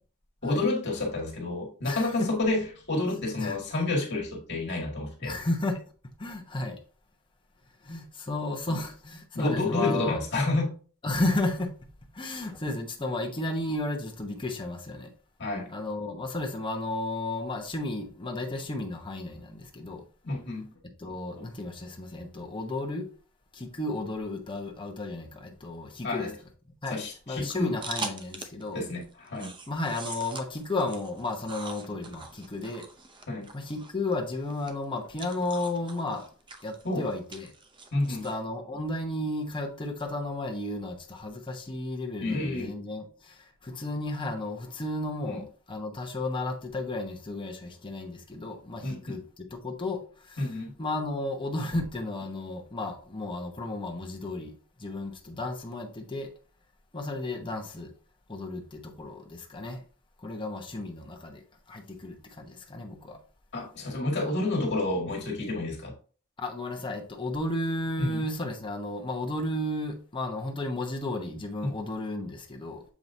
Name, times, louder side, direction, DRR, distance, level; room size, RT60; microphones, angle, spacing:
voice 1, 0.4-5.3 8.7-8.8 9.3-10.7 15.4-15.7 20.2-20.7 26.0-26.3 26.9-27.8 28.7-29.5 33.3-33.5 36.8-37.1 37.9-38.3 42.2-42.7 45.3-45.4 48.8-49.2 50.4-50.7 63.5-65.9 68.0-68.2 71.6-71.8, left 2 dB, 55° left, 1.7 m, -29 dB
voice 2, 1.8-2.3 3.0-3.6 5.2-5.8 6.2-6.8 7.8-10.2 11.0-11.7 12.1-15.1 15.7-20.0 21.0-23.1 23.5-26.3 26.8-27.0 27.3-28.8 29.7-32.8 33.5-36.3 36.6-37.5 38.2-50.5 50.8-56.3 56.9-57.9 58.3-59.8 60.2-61.4 61.7-63.2 66.4-72.8, left 2 dB, 25° left, 1.0 m, -33 dB
sound 1, 27.8-28.7 29.0-38.4, right 3 dB, 20° right, 0.6 m, -42 dB
7.3 x 4.8 x 2.7 m
head